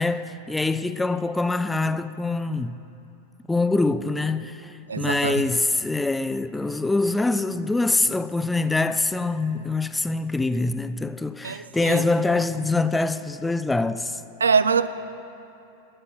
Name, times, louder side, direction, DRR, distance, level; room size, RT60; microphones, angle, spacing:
voice 1, 0.0-2.8 3.5-14.2, left 3 dB, 10° left, 0.4 m, -24 dB
voice 2, 4.9-5.5 11.4-12.1 14.4-14.9, right 5 dB, 70° right, 0.4 m, -23 dB
12.5 x 7.7 x 6.0 m
figure-of-eight pair, 90°, 0 cm